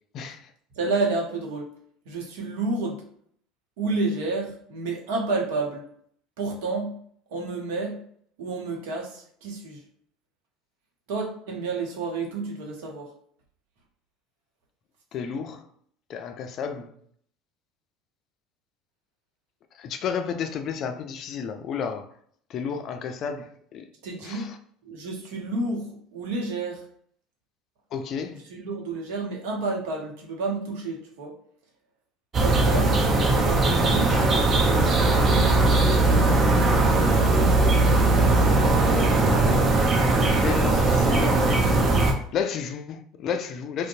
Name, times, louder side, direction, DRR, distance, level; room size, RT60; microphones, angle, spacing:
voice 1, 0.1-0.5 15.1-15.7 16.1-17.0 19.7-22.1 22.5-23.9 24.2-24.6 27.9-28.4 37.6-39.8 40.2-41.7 42.3-43.9, left 6 dB, 50° left, 0.3 m, -32 dB
voice 2, 0.7-1.7 2.0-3.0 3.8-5.9 6.4-7.0 7.3-8.0 8.4-9.8 11.1-13.1 24.0-24.5 24.8-26.8 28.5-31.3 32.4-33.0 33.4-35.0, right 3 dB, 70° right, 0.7 m, -30 dB
sound 1, 32.3-42.1, right 2 dB, 35° right, 0.6 m, -20 dB
2.6 x 2.0 x 2.6 m
hypercardioid pair, 75°, 0 cm